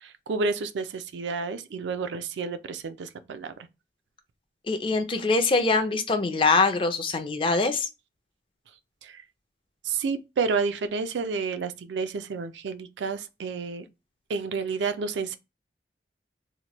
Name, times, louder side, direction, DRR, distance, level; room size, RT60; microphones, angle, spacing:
voice 1, 0.0-3.5 9.0-9.2 9.8-13.9 14.3-15.4, right 4 dB, 85° right, 0.4 m, -30 dB
voice 2, 4.7-7.9, left 3 dB, 30° left, 0.4 m, -23 dB
2.9 x 2.1 x 2.9 m
head